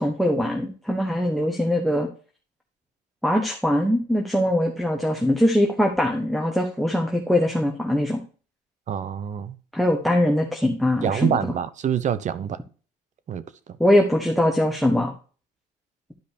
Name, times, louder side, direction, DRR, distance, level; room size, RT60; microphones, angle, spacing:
voice 1, 0.0-2.1 3.2-8.2 9.7-11.4 13.8-15.1, left 1 dB, ahead, 1.3 m, -22 dB
voice 2, 8.9-9.6 11.0-12.6 13.3-13.4, right 8 dB, 45° right, 0.8 m, -26 dB
12.0 x 5.1 x 2.9 m
cardioid pair, 110°, 17 cm